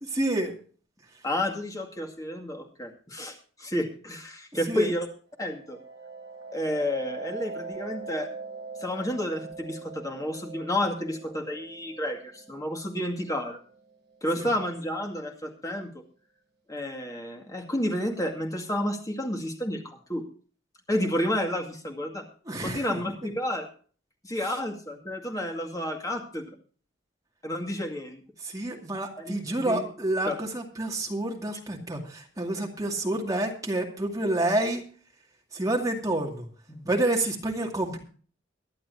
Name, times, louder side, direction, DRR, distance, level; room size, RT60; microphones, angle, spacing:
voice 1, 0.1-0.5 4.7-4.9 14.4-14.5 22.5-23.0 28.4-34.8 35.5-36.5 36.8-38.0, right 1 dB, 20° right, 0 dB, 2.3 m, -28 dB
voice 2, 1.2-5.1 5.4-5.8 6.5-8.3 8.8-13.6 14.2-15.9 16.7-20.2 20.9-22.2 22.6-23.7 24.2-26.6 27.4-28.2 29.2-29.9 30.3-30.4, left 1 dB, 20° left, 1 dB, 2.2 m, -31 dB
sound 1, 5.3-14.8, right 4 dB, 60° right, 4.6 m, -42 dB
23.0 x 10.5 x 2.7 m, 0.42 s
head